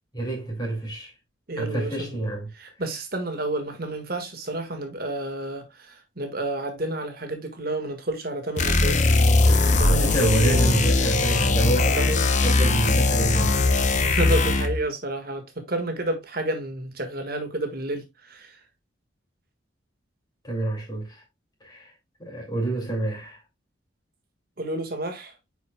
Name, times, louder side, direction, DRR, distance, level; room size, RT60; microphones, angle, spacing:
voice 1, 0.1-1.1 1.6-2.5 9.8-13.6 20.4-21.2 21.6-21.9 22.2-23.4, right 2 dB, 20° left, 2.3 m, -27 dB
voice 2, 1.5-2.2 2.5-9.1 9.4-10.7 12.0-12.1 14.0-18.5 24.6-25.3, right 1 dB, 50° right, 1.5 m, -30 dB
sound 1, 8.6-14.8, left 3 dB, 35° left, 0.7 m, -20 dB
9.1 x 4.8 x 2.2 m
head